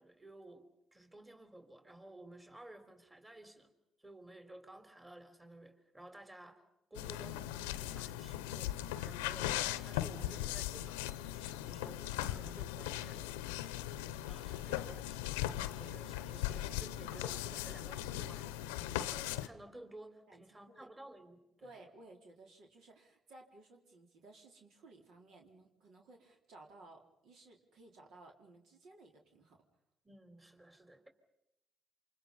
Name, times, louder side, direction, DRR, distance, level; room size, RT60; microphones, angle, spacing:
voice 1, 0.0-3.7 4.0-6.6 6.9-21.7 30.0-31.1, right 1 dB, 20° right, 7 dB, 3.8 m, -55 dB
sound 1, 6.9-19.5, left 13 dB, 85° left, 0.8 m, -39 dB
voice 2, 20.3-20.9 21.6-29.6, right 2 dB, 70° right, 1 dB, 4.1 m, -58 dB
28.5 x 26.5 x 5.6 m, 0.89 s
hypercardioid pair, 50°, 0 cm